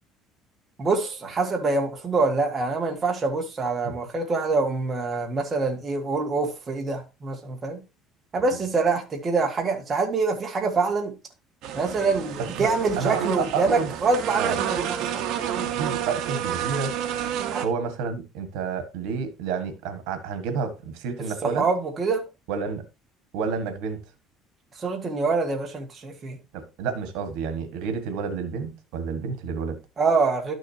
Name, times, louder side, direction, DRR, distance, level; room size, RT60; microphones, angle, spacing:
voice 1, 0.8-7.8 8.3-11.1 11.7-15.2 17.5-17.6 21.4-22.3 24.8-26.4 30.0-30.5, right 3 dB, 25° right, 1.7 m, -25 dB
sound 1, 11.6-17.7, right 9 dB, 60° right, 1.2 m, -29 dB
voice 2, 12.4-13.9 14.4-14.6 15.6-16.9 17.6-21.7 22.5-22.8 23.3-24.0 26.5-29.8, right 5 dB, 85° right, 1.6 m, -30 dB
12.0 x 6.4 x 2.8 m
cardioid pair, 160°, 0 cm